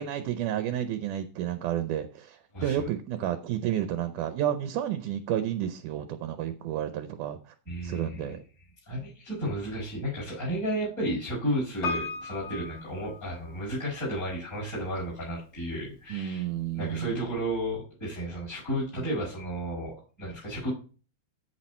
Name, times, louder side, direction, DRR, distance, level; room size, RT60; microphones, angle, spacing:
voice 1, 0.0-7.4 7.8-8.4 16.1-17.3 19.0-19.1, right 11 dB, 75° right, 9 dB, 2.1 m, -31 dB
voice 2, 2.5-2.9 7.7-8.3 8.9-16.5 16.7-20.7, equal, 20° left, -6 dB, 6.0 m, -33 dB
Piano, 11.8-13.9 14.1-14.2, left 4 dB, 45° left, 3.1 m, -35 dB
13.5 x 4.7 x 4.3 m, 0.36 s
omnidirectional pair, 4.0 m